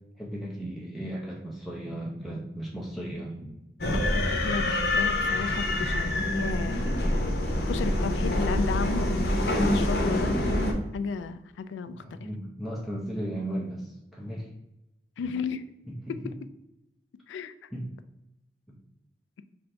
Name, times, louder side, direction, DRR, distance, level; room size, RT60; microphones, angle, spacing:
voice 1, 0.2-3.4 7.7-8.2 12.0-14.5 15.2-15.3 15.9-16.2 17.7-17.9 18.7-18.8, right 1 dB, ahead, -4 dB, 0.6 m, -36 dB
sound 1, 0.6-1.4 1.8-2.6 3.1-3.9 4.2-5.0 5.5-6.3 6.7-7.5 7.9-8.7 9.1-9.9 10.3-11.1, right 1 dB, 25° right, 1.1 m, -44 dB
sound 2, 3.8-10.7, left 1 dB, 55° left, 0.8 m, -26 dB
voice 2, 3.9-7.0 7.7-10.4 10.9-12.2 15.2-15.6 16.1-16.3 17.3-17.7, left 5 dB, 90° left, 12 dB, 0.3 m, -34 dB
5.7 x 2.6 x 3.2 m, 0.91 s
head